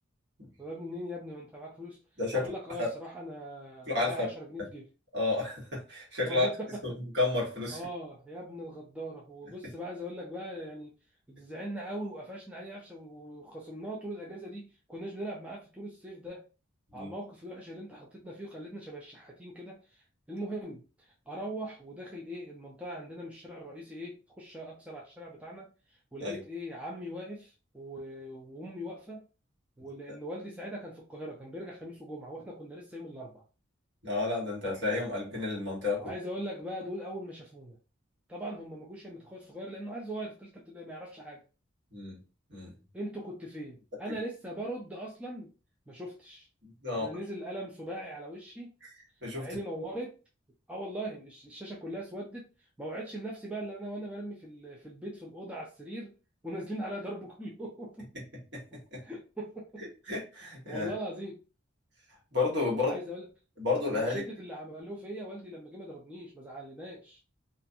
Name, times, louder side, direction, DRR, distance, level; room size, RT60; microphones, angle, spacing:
voice 1, 0.6-2.0 2.3-4.9 6.2-7.0 7.7-10.9 11.3-16.4 16.9-25.7 26.1-29.3 29.8-33.4 36.0-37.8 38.3-41.4 42.9-45.5 45.9-46.5 46.9-48.7 49.4-50.2 50.7-56.1 56.4-58.2 59.0-59.8 60.7-61.4 62.7-63.3 63.9-67.2, equal, 5° right, -3 dB, 0.4 m, -40 dB
voice 2, 2.2-2.5 2.8-2.9 3.9-4.3 5.1-6.5 6.8-7.8 16.9-17.1 26.2-26.4 34.0-36.1 41.9-42.2 42.5-42.7 46.6-47.1 49.2-49.5 58.5-59.0 59.8-60.9 62.3-62.9 63.6-64.2, left 3 dB, 60° right, -4 dB, 1.4 m, -31 dB
2.5 x 2.3 x 2.6 m, 0.33 s
head